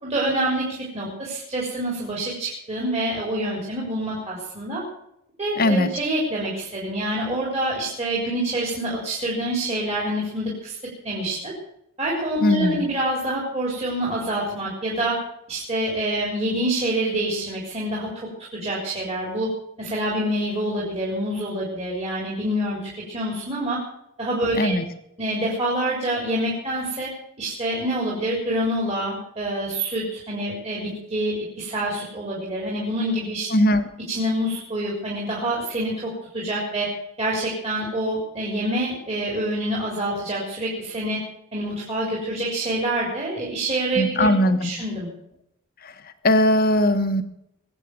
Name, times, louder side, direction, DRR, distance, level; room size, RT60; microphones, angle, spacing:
voice 1, 0.0-4.8 5.4-10.8 11.0-11.5 12.0-15.2 15.5-19.5 19.8-23.8 24.2-24.7 25.2-27.1 27.4-33.5 34.1-36.9 37.2-41.2 41.5-44.3 44.6-45.1, right 1 dB, 30° right, -5 dB, 4.1 m, -26 dB
voice 2, 5.6-5.9 12.4-12.8 24.5-24.8 33.5-33.9 44.0-44.7 45.8-45.9 46.2-47.2, left 1 dB, 45° left, 9 dB, 1.3 m, -19 dB
22.0 x 8.5 x 6.6 m, 0.78 s
head